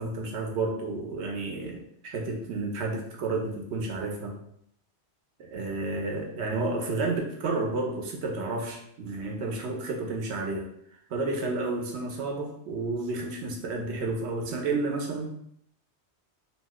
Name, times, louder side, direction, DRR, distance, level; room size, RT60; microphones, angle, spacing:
voice 1, 0.0-4.3 5.4-10.7 11.1-15.3, right 3 dB, 75° right, 1 dB, 0.9 m, -31 dB
2.7 x 2.1 x 3.4 m, 0.72 s
omnidirectional pair, 1.1 m